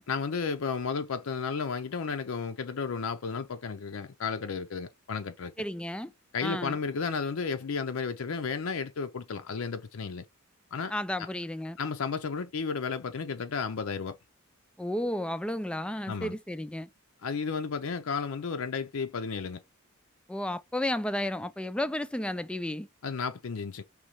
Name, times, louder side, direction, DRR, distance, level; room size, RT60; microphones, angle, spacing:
voice 1, 0.1-5.5 6.3-10.2 10.7-10.9 11.2-11.3 11.8-14.2 16.1-16.4 17.2-19.6 23.0-23.8, left 5 dB, 75° left, 0.5 m, -33 dB
voice 2, 5.6-6.1 6.4-6.8 10.9-11.8 14.8-16.9 20.3-22.9, left 1 dB, 5° left, 0.3 m, -32 dB
5.1 x 3.1 x 3.0 m
head